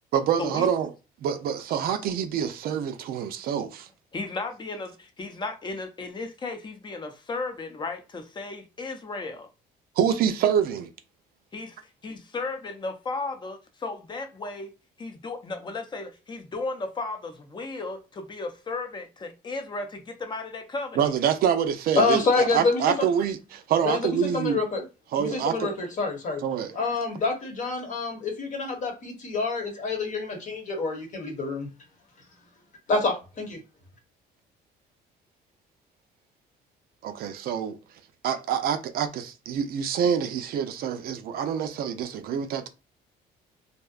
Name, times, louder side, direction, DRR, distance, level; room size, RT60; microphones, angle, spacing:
voice 1, 0.1-0.9 1.2-3.9 10.0-10.9 21.0-24.6 25.1-25.7 26.4-26.7 37.0-37.8 38.2-42.7, right 8 dB, 60° right, 0.4 m, -26 dB
voice 2, 4.1-9.5 11.5-11.8 12.0-14.7 15.0-21.1, left 3 dB, 25° left, 0.6 m, -35 dB
voice 3, 21.9-23.1 23.8-24.8 25.1-26.4 26.7-31.7 32.9-33.6, left 3 dB, 50° left, 1.0 m, -27 dB
2.7 x 2.1 x 2.3 m
cardioid pair, 110°, 17 cm